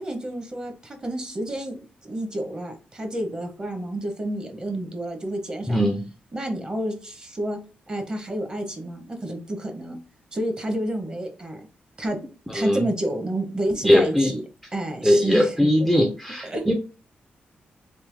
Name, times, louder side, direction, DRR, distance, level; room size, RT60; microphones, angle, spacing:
voice 1, 0.0-1.8 2.0-5.8 6.3-7.6 7.9-10.0 10.3-11.7 12.0-12.2 12.5-14.4 14.7-15.7 16.0-16.1 16.4-16.7, right 1 dB, 25° right, 4 dB, 0.9 m, -29 dB
voice 2, 5.7-6.0 12.5-12.8 13.8-14.3 15.0-16.7, left 1 dB, ahead, 2 dB, 0.4 m, -20 dB
3.4 x 2.8 x 3.3 m, 0.35 s
wide cardioid pair, 135°, 3 cm